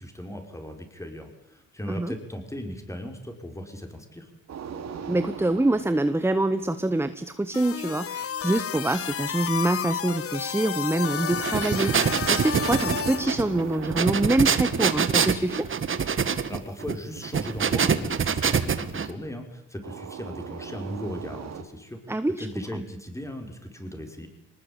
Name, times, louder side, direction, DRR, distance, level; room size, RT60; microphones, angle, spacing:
voice 1, 0.0-4.3 16.5-24.3, equal, 10° left, 4 dB, 5.9 m, -37 dB
sound 1, 4.5-7.6 11.0-16.3 19.8-21.6, right 7 dB, 60° right, 3.2 m, -40 dB
voice 2, 5.1-15.7 22.1-22.5, right 2 dB, 10° right, 12 dB, 1.2 m, -25 dB
sound 2, 7.5-13.3, left 8 dB, 50° left, 1.3 m, -31 dB
sound 3, 11.3-19.1, right 6 dB, 40° right, 2.1 m, -25 dB
23.5 x 20.0 x 9.1 m, 0.86 s
cardioid pair, 90°, 30 cm